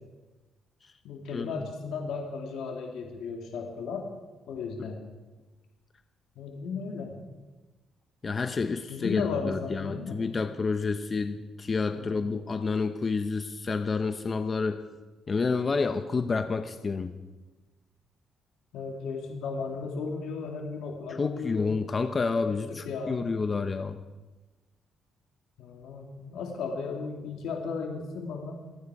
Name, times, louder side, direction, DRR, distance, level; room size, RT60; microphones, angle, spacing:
voice 1, 1.0-4.1 4.5-5.0 6.4-7.2 8.9-10.2 12.0-12.2 18.7-21.7 22.5-23.2 25.6-28.6, left 4 dB, 80° left, 2 dB, 2.5 m, -35 dB
voice 2, 8.2-14.8 15.3-17.2 21.1-24.0, left 4 dB, 35° left, 8 dB, 0.8 m, -29 dB
27.5 x 9.5 x 4.8 m, 1.2 s
cardioid pair, 90°, 0 cm